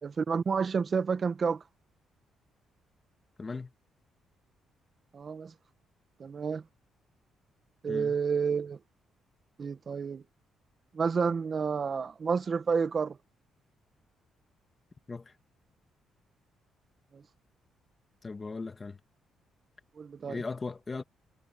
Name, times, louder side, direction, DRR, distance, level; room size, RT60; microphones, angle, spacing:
voice 1, 0.0-1.6 5.1-5.5 6.2-6.6 7.8-8.8 9.6-10.2 10.9-13.2 17.1-17.2 20.0-20.4, right 5 dB, 45° right, 1.4 m, -30 dB
voice 2, 3.4-3.7 7.9-8.2 15.1-15.4 18.2-19.0 20.3-21.0, left 4 dB, 30° left, 2.0 m, -38 dB
cardioid pair, 90°, 0 cm